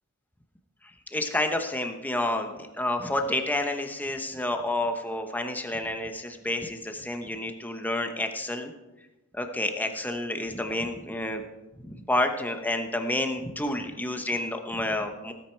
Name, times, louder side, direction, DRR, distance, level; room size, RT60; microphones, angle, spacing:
voice 1, 1.1-8.7 9.3-11.4 11.9-15.3, left 1 dB, 10° left, 5 dB, 1.0 m, -29 dB
18.0 x 9.3 x 4.6 m, 1.1 s
head